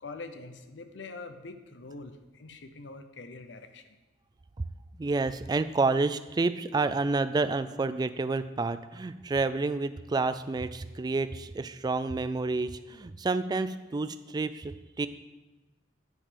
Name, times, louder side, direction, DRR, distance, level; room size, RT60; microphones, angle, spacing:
voice 1, 0.0-4.0, left 3 dB, 80° left, 8 dB, 0.7 m, -44 dB
voice 2, 5.0-15.1, right 3 dB, 20° right, 13 dB, 0.3 m, -29 dB
9.5 x 5.3 x 5.2 m, 1.1 s
head